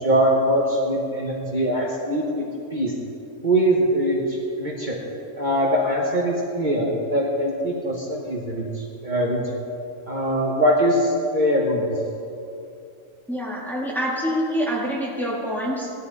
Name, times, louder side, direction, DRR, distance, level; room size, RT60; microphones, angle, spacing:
voice 1, 0.0-2.9 3.4-5.0 5.4-9.4 10.1-12.0, equal, 35° right, -3 dB, 1.4 m, -22 dB
voice 2, 13.3-15.9, equal, ahead, -3 dB, 1.7 m, -26 dB
17.0 x 12.5 x 4.0 m, 2.7 s
omnidirectional pair, 1.4 m